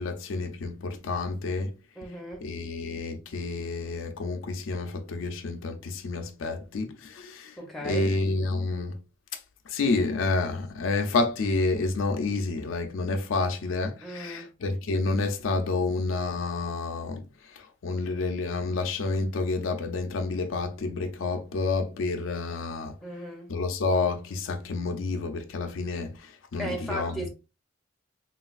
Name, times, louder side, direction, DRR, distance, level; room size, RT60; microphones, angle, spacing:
voice 1, 0.0-1.7 2.4-7.6 7.8-9.0 9.3-23.0 23.5-27.3, left 3 dB, 85° left, 0.5 m, -29 dB
voice 2, 2.0-2.4 7.6-8.2 14.0-14.5 23.0-23.5 26.6-27.3, equal, ahead, 0.7 m, -36 dB
3.2 x 2.3 x 2.3 m
head